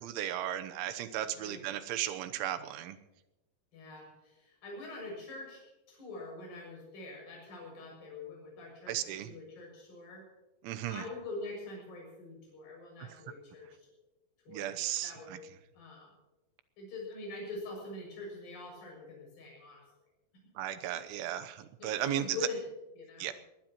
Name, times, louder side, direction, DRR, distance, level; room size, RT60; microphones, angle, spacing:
voice 1, 0.0-3.0 8.9-9.3 10.6-11.0 14.5-15.4 20.6-22.3 23.2-23.3, right 11 dB, 85° right, 10 dB, 3.3 m, -35 dB
voice 2, 1.3-1.6 3.7-5.6 5.9-10.2 10.9-13.9 14.5-15.4 15.7-16.1 16.8-19.8 20.9-21.0 21.8-22.6 22.9-23.3, left 3 dB, 50° left, -1 dB, 8.3 m, -44 dB
22.0 x 20.0 x 3.0 m, 0.98 s
omnidirectional pair, 5.2 m